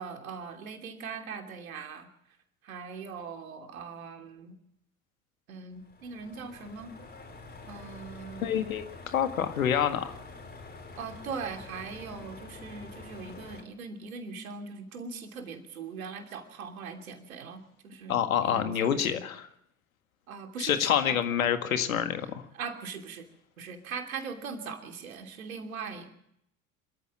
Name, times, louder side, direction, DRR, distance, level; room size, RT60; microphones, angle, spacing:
voice 1, 0.0-2.1 2.6-4.5 5.5-6.9 7.7-8.6 11.0-19.2 20.3-21.1 22.6-23.2 23.6-26.1, right 5 dB, 75° right, 5 dB, 3.0 m, -40 dB
sound 1, 5.7-13.6, left 3 dB, 25° left, 4.6 m, -47 dB
voice 2, 8.4-10.2 18.1-19.5 20.6-22.4, left 9 dB, 80° left, 9 dB, 1.9 m, -27 dB
26.0 x 14.0 x 7.6 m, 0.74 s
figure-of-eight pair, 65°, 42 cm